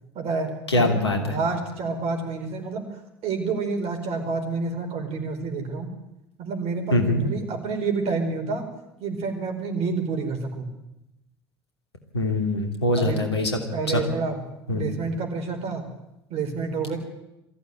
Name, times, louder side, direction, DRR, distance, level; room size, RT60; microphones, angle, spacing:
voice 1, 0.1-2.9 3.2-5.9 6.4-8.7 9.0-10.7 13.0-13.2 13.7-14.4 14.7-15.9 16.3-17.0, right 4 dB, 50° right, 4 dB, 4.9 m, -28 dB
voice 2, 0.7-1.2 6.9-7.2 12.1-13.5 13.9-14.0 14.7-14.8, left 1 dB, 85° left, 5 dB, 2.9 m, -22 dB
22.5 x 15.0 x 9.4 m, 0.89 s
figure-of-eight pair, 65°, 13 cm